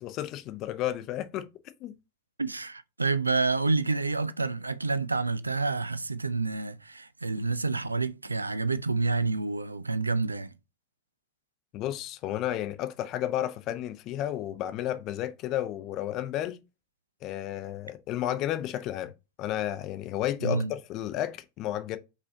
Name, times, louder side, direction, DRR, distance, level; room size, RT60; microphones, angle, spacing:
voice 1, 0.0-1.5 1.8-1.9 11.7-16.6 17.2-19.1 19.4-22.0, left 12 dB, 35° left, 0.5 m, -32 dB
voice 2, 2.4-10.5 20.4-20.7, right 3 dB, 80° right, 0.3 m, -28 dB
5.2 x 3.3 x 2.7 m
figure-of-eight pair, 90°, 0 cm